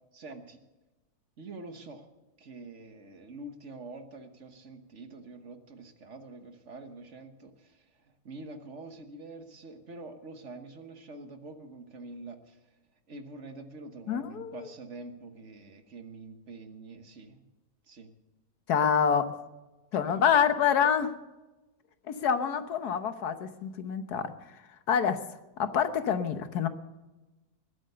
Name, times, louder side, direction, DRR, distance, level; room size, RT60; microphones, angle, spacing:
voice 1, 0.1-0.6 1.4-2.1 2.4-12.6 13.1-17.4 17.9-18.1 19.9-20.2, right 3 dB, 50° right, 8 dB, 1.4 m, -46 dB
voice 2, 14.1-14.7 18.7-19.3 19.9-21.1 22.1-24.3 24.9-25.2 25.6-26.7, left 7 dB, 80° left, 10 dB, 1.5 m, -26 dB
20.0 x 8.9 x 6.7 m, 1.1 s
omnidirectional pair, 1.7 m